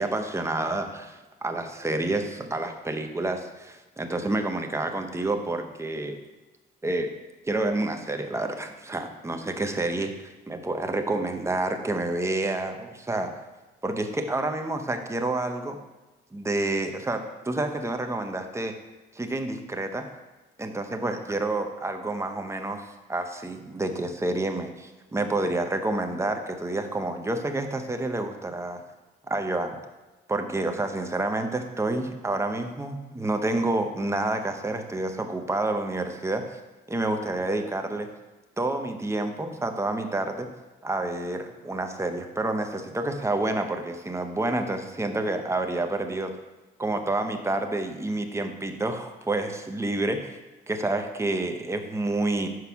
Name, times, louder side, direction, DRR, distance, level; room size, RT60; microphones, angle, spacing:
voice 1, 0.0-6.2 6.8-7.1 7.5-10.1 10.5-13.3 13.8-15.8 16.3-18.7 19.1-20.1 20.6-22.8 23.1-28.8 29.3-29.8 30.3-36.6 36.9-38.1 38.6-40.5 40.8-46.3 46.8-50.4 50.7-52.5, right 2 dB, 15° right, 6 dB, 0.8 m, -29 dB
6.2 x 4.8 x 5.8 m, 1.2 s
cardioid pair, 90°, 20 cm